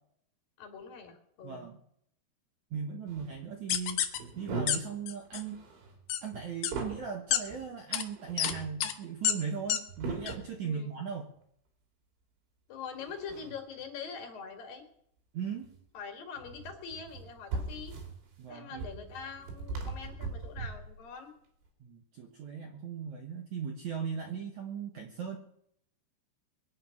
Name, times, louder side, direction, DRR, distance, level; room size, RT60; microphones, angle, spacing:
voice 1, 0.6-1.7 10.6-10.9 12.7-14.8 15.9-17.9 18.5-21.3, left 6 dB, 55° left, 4 dB, 3.4 m, -43 dB
voice 2, 1.4-1.8 2.7-5.6 6.2-11.3 15.3-15.7 18.4-18.9 21.8-25.4, right 6 dB, 85° right, 3 dB, 1.6 m, -38 dB
sound 1, 3.1-3.4 4.1-5.0 5.3-7.1 7.5-7.7 8.1-8.8 9.6-10.6 12.9-13.8 15.6-15.8 16.4-21.0, right 3 dB, 65° right, 5.5 m, -40 dB
sound 2, 3.7-4.2 4.7-4.8 5.1-5.4 6.1-6.2 6.6-6.7 7.3-7.4 7.9-8.0 8.4-8.5 8.8-8.9 9.2-9.3 9.7-9.8 10.3-10.4, left 11 dB, 80° left, 2.1 m, -28 dB
22.5 x 9.7 x 5.9 m, 0.70 s
omnidirectional pair, 5.6 m